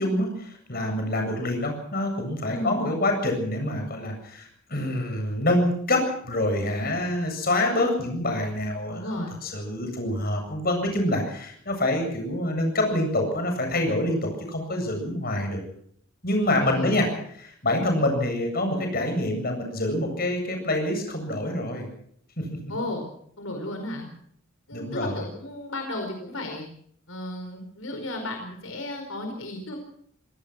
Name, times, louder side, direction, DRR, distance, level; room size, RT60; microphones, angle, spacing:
voice 1, 0.0-15.6 16.2-17.1 17.4-21.9 22.5-22.6 24.7-25.2, left 1 dB, 45° left, 4 dB, 7.9 m, -26 dB
voice 2, 2.5-2.8 8.9-9.3 16.6-17.1 22.7-23.0 23.4-24.1 24.7-26.6 27.1-29.8, left 1 dB, 75° left, 4 dB, 4.9 m, -34 dB
26.0 x 17.5 x 6.2 m, 0.65 s
head